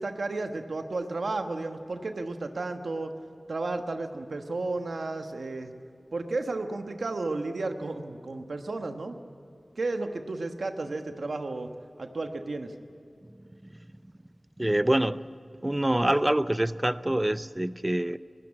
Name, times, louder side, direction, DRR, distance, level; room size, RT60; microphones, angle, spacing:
voice 1, 0.0-3.1 3.5-5.7 6.1-9.2 9.8-11.7 12.0-12.7, right 3 dB, 90° right, 1.2 m, -33 dB
voice 2, 14.6-15.3 15.6-18.2, right 1 dB, 20° right, 0.6 m, -26 dB
19.5 x 15.5 x 9.9 m
wide cardioid pair, 45°, 0 cm